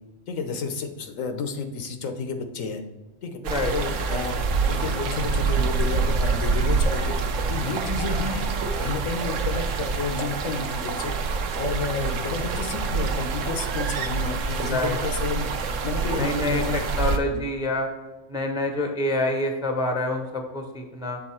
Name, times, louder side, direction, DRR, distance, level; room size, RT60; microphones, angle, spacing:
voice 1, 0.3-2.8 3.2-3.4 3.7-4.4 4.7-7.2 7.5-11.1 11.6-15.5 15.8-16.9 17.3-17.5, left 4 dB, 85° left, 6 dB, 1.2 m, -31 dB
sound 1, 3.4-17.2, right 4 dB, 75° right, 1.0 m, -26 dB
voice 2, 16.2-17.9 18.3-21.2, left 1 dB, 5° right, 4 dB, 0.5 m, -27 dB
7.3 x 4.0 x 4.3 m, 1.2 s
omnidirectional pair, 1.3 m